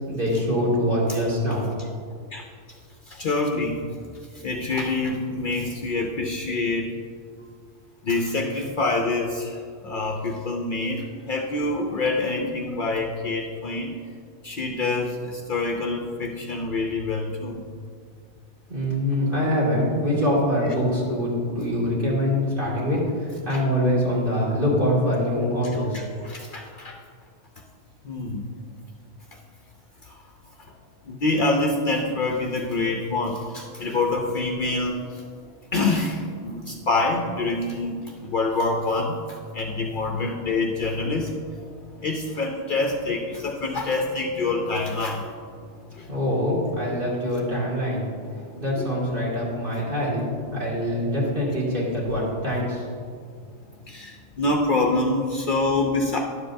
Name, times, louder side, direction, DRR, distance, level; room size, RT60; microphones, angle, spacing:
voice 1, 0.0-1.7 18.7-26.0 46.1-48.0 48.6-52.9, equal, 50° right, -8 dB, 2.6 m, -24 dB
voice 2, 3.1-3.8 4.3-6.9 8.0-14.0 14.4-17.7 23.5-23.6 25.9-27.0 28.0-28.5 30.0-30.2 30.6-30.7 31.1-35.2 35.7-45.3 45.9-46.2 46.4-46.6 48.2-48.9 53.9-56.2, left 2 dB, 55° left, 1 dB, 0.6 m, -26 dB
11.0 x 7.3 x 2.6 m, 2.1 s
omnidirectional pair, 1.2 m